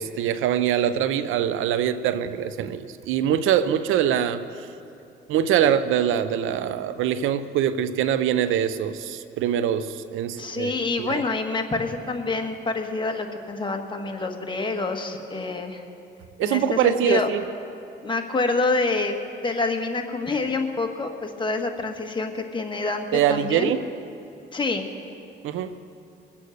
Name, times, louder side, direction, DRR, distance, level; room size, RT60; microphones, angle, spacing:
voice 1, 0.0-4.7 5.3-10.7 11.0-11.2 16.4-17.4 23.1-23.8 25.4-25.8, right 9 dB, 90° right, 13 dB, 0.6 m, -23 dB
voice 2, 10.4-15.8 16.4-17.3 18.0-19.1 19.4-23.7 24.5-24.8, left 3 dB, 25° left, 3 dB, 1.5 m, -27 dB
22.0 x 8.5 x 6.5 m, 2.6 s
cardioid pair, 90°, 20 cm